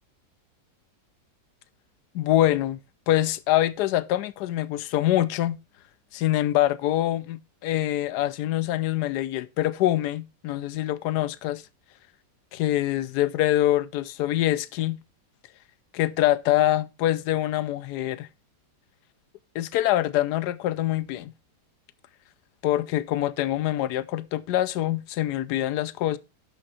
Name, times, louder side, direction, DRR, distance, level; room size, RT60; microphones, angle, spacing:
voice 1, 2.1-2.8 3.1-5.6 6.1-11.6 12.5-15.0 15.9-18.3 19.5-21.3 22.6-26.2, left 14 dB, 75° left, 1.2 m, -25 dB
8.8 x 6.5 x 4.2 m
omnidirectional pair, 1.8 m